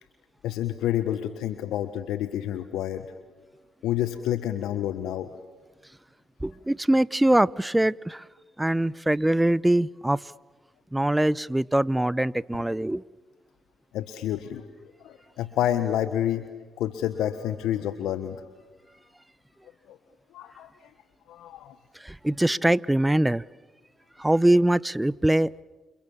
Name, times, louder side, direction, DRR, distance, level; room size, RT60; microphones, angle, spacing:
voice 1, 0.4-3.0 3.8-5.3 13.9-14.7 15.0-16.5 16.8-18.4 19.9-20.0 20.3-20.7 21.3-21.7, left 11 dB, 80° left, 10 dB, 1.3 m, -28 dB
voice 2, 6.4-8.2 8.6-10.3 10.9-13.0 21.9-23.4 24.2-25.6, right 1 dB, 10° right, 22 dB, 0.8 m, -23 dB
29.0 x 28.0 x 7.3 m, 1.2 s
hypercardioid pair, 50°, 0 cm